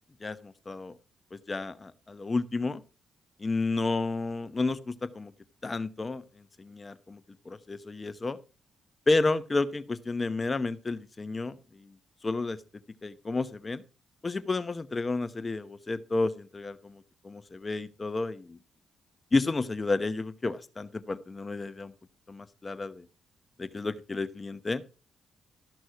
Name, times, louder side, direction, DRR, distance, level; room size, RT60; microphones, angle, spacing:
voice 1, 0.2-0.9 1.3-2.8 3.4-5.3 5.6-6.2 6.6-7.2 7.5-8.4 9.1-11.9 12.2-12.6 13.0-13.8 14.2-18.6 19.3-21.9 22.3-23.1 23.6-24.8, left 3 dB, 30° left, 14 dB, 0.9 m, -31 dB
13.0 x 6.1 x 4.9 m, 0.34 s
cardioid pair, 75°, 0 cm